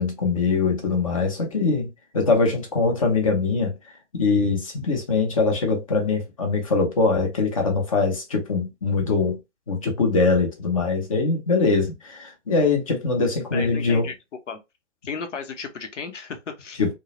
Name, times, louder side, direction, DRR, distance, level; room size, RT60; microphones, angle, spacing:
voice 1, 0.0-3.7 4.1-9.4 9.7-14.1 16.8-16.9, left 4 dB, 30° left, 0.5 m, -22 dB
voice 2, 13.5-14.1 14.5-14.6 15.0-16.9, left 5 dB, 70° left, 0.8 m, -34 dB
2.2 x 2.0 x 2.8 m
hypercardioid pair, 150°, 37 cm